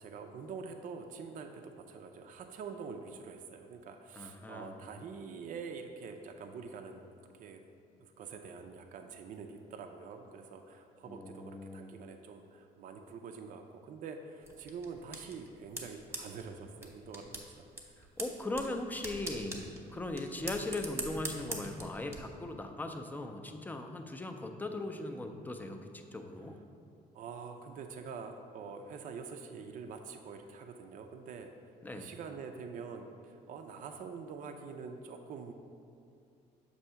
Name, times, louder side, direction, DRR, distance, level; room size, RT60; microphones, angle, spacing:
voice 1, 0.0-7.1 7.4-7.6 8.0-17.7 18.0-18.1 26.4-26.5 27.1-31.5 31.9-35.5, right 5 dB, 50° right, 4 dB, 0.4 m, -45 dB
voice 2, 4.2-4.8 11.0-12.0 18.2-26.6 31.8-32.1, left 2 dB, 10° left, 5 dB, 0.4 m, -39 dB
sound 1, 14.4-22.2, right 2 dB, 15° right, 0.9 m, -44 dB
6.6 x 2.7 x 5.5 m, 2.5 s
cardioid pair, 110°, 17 cm